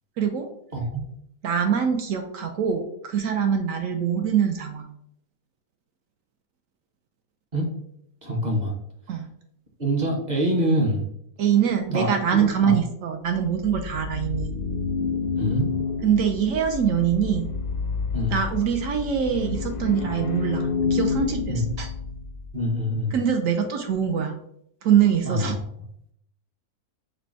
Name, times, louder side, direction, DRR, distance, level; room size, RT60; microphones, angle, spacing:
voice 1, 0.2-0.5 1.4-4.9 9.1-9.3 11.4-14.5 16.0-17.5 18.3-21.9 23.1-24.4 24.8-25.6, right 8 dB, 65° right, 5 dB, 0.8 m, -24 dB
voice 2, 0.7-1.1 7.5-7.7 8.2-8.7 9.8-11.1 11.9-12.1 12.6-12.7 15.3-15.7 18.1-18.4 21.5-21.6 22.5-23.1 25.2-25.5, equal, 40° right, -1 dB, 0.7 m, -25 dB
sound 1, 13.3-22.6, left 5 dB, 70° left, 0.5 m, -29 dB
5.0 x 2.2 x 4.6 m, 0.71 s
omnidirectional pair, 1.7 m